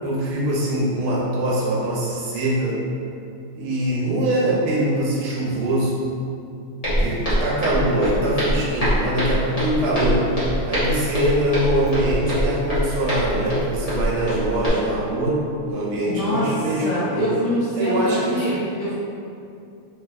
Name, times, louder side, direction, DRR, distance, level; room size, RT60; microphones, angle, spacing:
voice 1, 0.0-2.8 3.5-6.0 7.0-10.2 10.7-17.2 17.7-18.5, right 1 dB, 80° right, -5 dB, 1.6 m, -23 dB
Walk footsteps, 6.8-14.7, equal, 30° left, 0.6 m, -24 dB
voice 2, 16.0-16.5 16.8-18.9, equal, 75° left, -9 dB, 0.9 m, -24 dB
3.7 x 3.3 x 2.3 m, 2.5 s
omnidirectional pair, 2.4 m